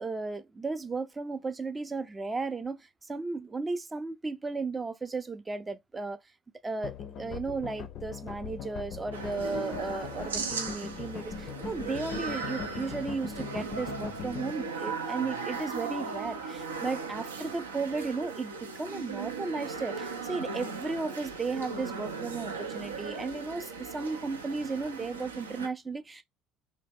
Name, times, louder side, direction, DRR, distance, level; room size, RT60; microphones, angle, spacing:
voice 1, 0.0-6.2 6.6-26.2, right 3 dB, 20° right, 0.4 m, -35 dB
sound 1, 6.8-14.5, left 7 dB, 50° left, 0.4 m, -40 dB
sound 2, 9.1-25.7, right 4 dB, 80° right, 0.4 m, -38 dB
2.8 x 2.1 x 3.4 m
figure-of-eight pair, 60°, 0 cm